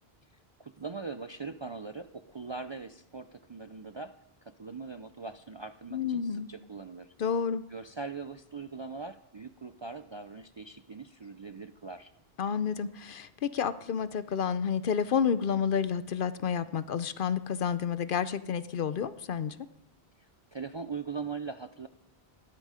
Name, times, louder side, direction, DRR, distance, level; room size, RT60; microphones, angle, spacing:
voice 1, 0.6-4.1 4.6-7.1 7.7-12.1 20.2-21.9, right 4 dB, 40° right, 9 dB, 0.4 m, -41 dB
voice 2, 5.9-6.5 7.2-7.6 12.4-19.6, left 7 dB, 60° left, 14 dB, 0.8 m, -30 dB
18.0 x 11.5 x 5.0 m, 0.84 s
omnidirectional pair, 1.0 m